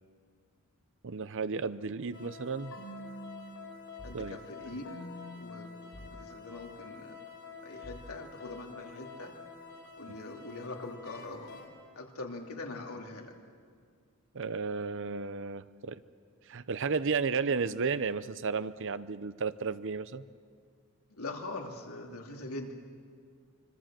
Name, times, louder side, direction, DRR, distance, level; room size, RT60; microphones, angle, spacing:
voice 1, 1.0-2.8 4.1-4.4 4.7-4.8 14.3-16.0 16.5-20.2, right 5 dB, 60° right, 14 dB, 0.7 m, -33 dB
sound 1, 2.1-11.7, left 3 dB, 65° left, 4.5 m, -47 dB
voice 2, 4.0-4.9 5.3-7.2 7.6-9.3 10.0-11.7 11.9-13.4 21.1-22.7, left 2 dB, 85° left, 1 dB, 3.0 m, -43 dB
25.5 x 25.0 x 7.7 m, 2.1 s
head